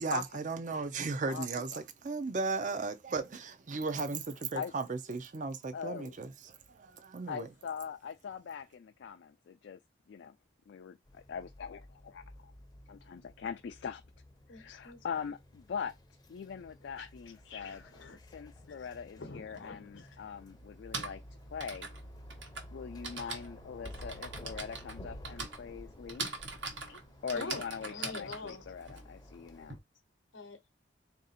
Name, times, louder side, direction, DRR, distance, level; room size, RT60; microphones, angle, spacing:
voice 1, 0.0-7.5, right 4 dB, 40° right, 0.5 m, -36 dB
voice 2, 5.7-6.2 7.3-9.8 10.1-10.4 10.7-12.5 12.9-14.0 14.5-15.9 16.3-17.8 18.3-21.2 21.5-21.9 22.7-26.3 27.2-29.8, left 6 dB, 70° left, 0.3 m, -42 dB
sound 1, 11.1-29.8, equal, 20° left, 0.5 m, -52 dB
voice 3, 14.5-15.0 17.0-17.1 17.5-18.2 18.5-20.3 26.9-27.0 27.3-28.8 30.3-30.7, left 3 dB, 85° left, 0.8 m, -46 dB
Typing, 19.6-19.7 20.6-29.7, right 4 dB, 75° right, 1.1 m, -42 dB
3.5 x 2.7 x 4.1 m
head